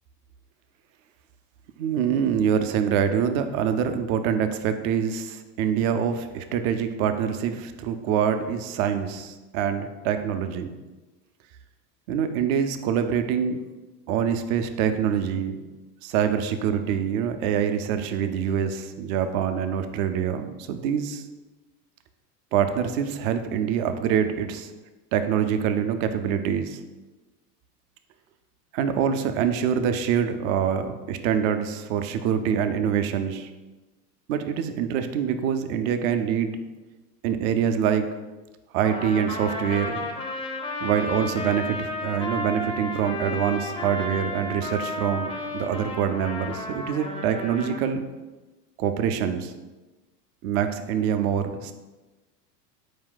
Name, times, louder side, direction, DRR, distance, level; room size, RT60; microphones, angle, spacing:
voice 1, 1.8-10.7 12.1-13.6 14.1-15.7 16.0-21.2 22.5-24.7 25.1-26.8 28.7-33.5 34.3-36.6 37.2-38.2 38.7-40.0 40.8-48.1 48.8-49.5 50.4-51.7, right 8 dB, 55° right, 8 dB, 0.6 m, -25 dB
Trumpet, 38.8-47.8, left 2 dB, 10° left, 0.4 m, -33 dB
4.3 x 2.8 x 3.8 m, 1.2 s
hypercardioid pair, 90°, 48 cm